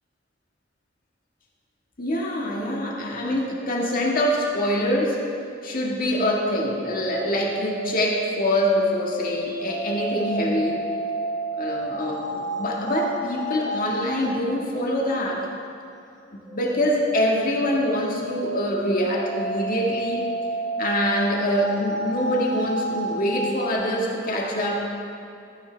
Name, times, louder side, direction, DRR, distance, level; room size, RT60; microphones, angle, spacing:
voice 1, 2.0-5.2 5.6-10.8 11.6-15.5 16.3-20.2 20.8-24.8, left 1 dB, 45° left, -2 dB, 1.8 m, -25 dB
sound 1, 7.0-14.4 16.4-23.7, right 2 dB, ahead, 1.8 m, -31 dB
14.0 x 10.0 x 3.4 m, 2.7 s
head